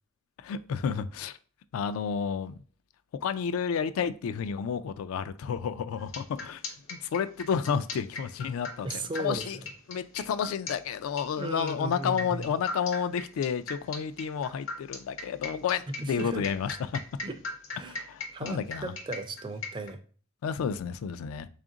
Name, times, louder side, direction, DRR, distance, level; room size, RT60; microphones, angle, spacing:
voice 1, 0.4-1.4 1.7-2.6 3.2-6.6 6.9-9.6 9.9-17.0 17.8-18.9 20.4-21.5, left 7 dB, 80° left, 0.3 m, -31 dB
sound 1, 6.0-19.9, left 3 dB, 65° left, 0.8 m, -39 dB
voice 2, 8.8-9.5 11.4-12.5 16.0-16.5 17.2-17.4 17.7-18.0 18.3-20.0, right 2 dB, 25° right, 0.3 m, -36 dB
3.4 x 2.5 x 3.8 m
head